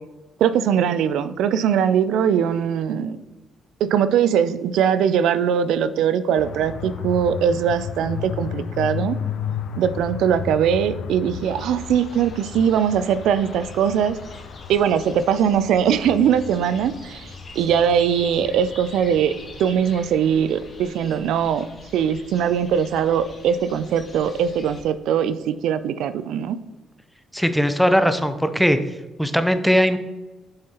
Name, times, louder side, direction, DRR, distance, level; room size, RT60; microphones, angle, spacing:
voice 1, 0.4-3.2 3.8-9.2 9.8-14.2 14.7-17.3 17.6-19.3 19.6-21.7 21.9-26.6, right 8 dB, 85° right, 13 dB, 0.4 m, -21 dB
sound 1, 6.4-20.3, left 7 dB, 75° left, 0.5 m, -34 dB
sound 2, 11.4-24.8, left 2 dB, 40° left, 2.1 m, -43 dB
voice 2, 27.3-28.8 29.2-30.0, equal, ahead, 10 dB, 0.6 m, -19 dB
7.1 x 6.4 x 2.9 m, 1.1 s
cardioid pair, 90°, 0 cm